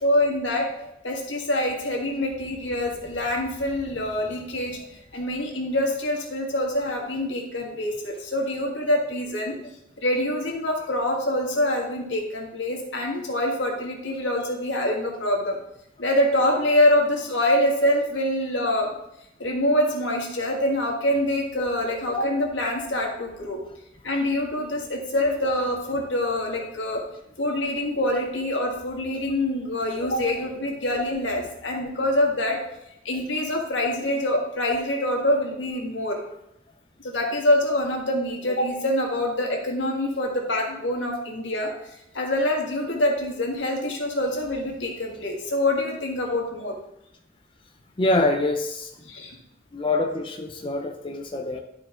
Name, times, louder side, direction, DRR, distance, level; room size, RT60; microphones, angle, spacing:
voice 1, 0.0-0.6 1.0-9.5 10.0-15.6 16.0-18.9 19.4-23.6 24.0-27.0 27.4-32.6 33.0-36.2 37.0-46.8 49.1-49.3, left 1 dB, 85° left, 0 dB, 1.7 m, -25 dB
voice 2, 48.0-49.0 49.7-51.6, left 2 dB, 25° left, 3 dB, 0.5 m, -25 dB
11.0 x 4.4 x 3.7 m, 0.81 s
head